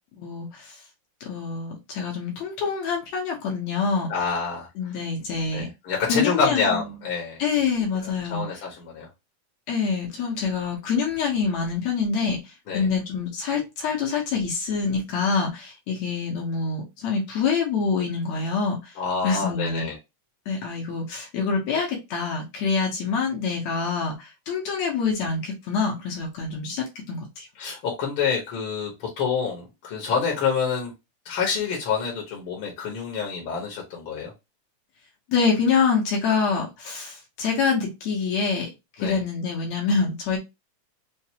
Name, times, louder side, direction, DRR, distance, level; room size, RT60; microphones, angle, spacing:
voice 1, 0.2-0.8 1.2-4.1 4.8-5.7 6.1-6.6 7.4-8.5 9.7-12.4 12.7-18.9 19.2-19.9 20.5-27.5 35.3-38.7 39.0-40.4, left 5 dB, 70° left, 0 dB, 2.1 m, -26 dB
voice 2, 4.1-4.9 5.5-7.4 8.0-9.1 12.7-12.9 18.9-20.0 27.5-30.9 31.2-34.3 39.0-39.2, left 5 dB, 55° left, -1 dB, 1.6 m, -27 dB
5.7 x 2.6 x 2.8 m, 0.23 s
omnidirectional pair, 3.4 m